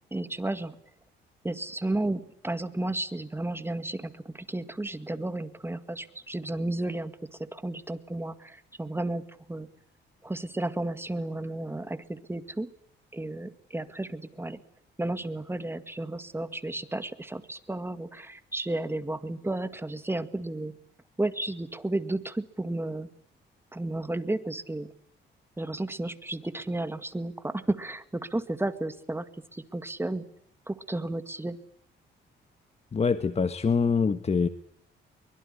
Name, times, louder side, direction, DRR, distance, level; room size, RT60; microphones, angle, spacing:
voice 1, 0.1-0.8 1.4-7.1 7.5-9.7 10.2-12.7 13.1-14.6 15.0-20.7 21.2-23.1 23.7-24.9 25.6-29.3 29.5-30.3 30.7-31.6, right 2 dB, 10° right, 11 dB, 2.0 m, -33 dB
voice 2, 32.9-34.5, left 5 dB, 30° left, 11 dB, 1.4 m, -24 dB
23.5 x 22.5 x 10.0 m, 0.69 s
cardioid pair, 90°, 20 cm